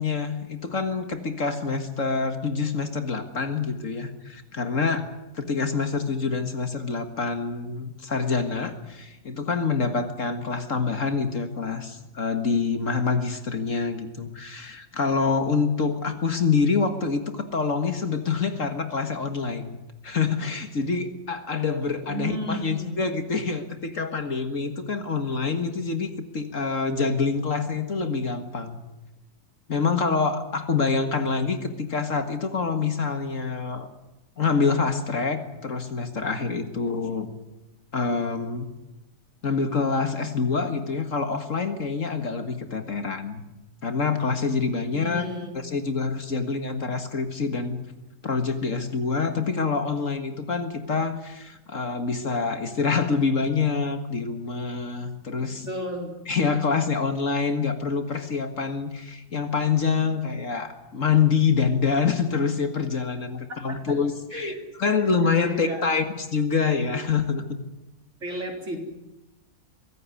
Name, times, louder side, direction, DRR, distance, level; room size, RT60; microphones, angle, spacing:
voice 1, 0.0-5.0 5.3-28.8 29.7-33.9 34.4-37.3 37.9-38.7 39.4-43.5 43.8-45.2 45.6-47.8 48.2-55.7 56.3-64.5 64.8-66.0 66.3-67.4, left 5 dB, 55° left, 8 dB, 2.0 m, -26 dB
voice 2, 22.0-23.0 44.9-45.5 55.4-56.8 63.7-63.9 64.3-64.6 65.4-65.9 68.2-68.8, right 1 dB, 45° right, 3 dB, 4.0 m, -34 dB
23.5 x 16.0 x 9.7 m, 1.0 s
omnidirectional pair, 1.7 m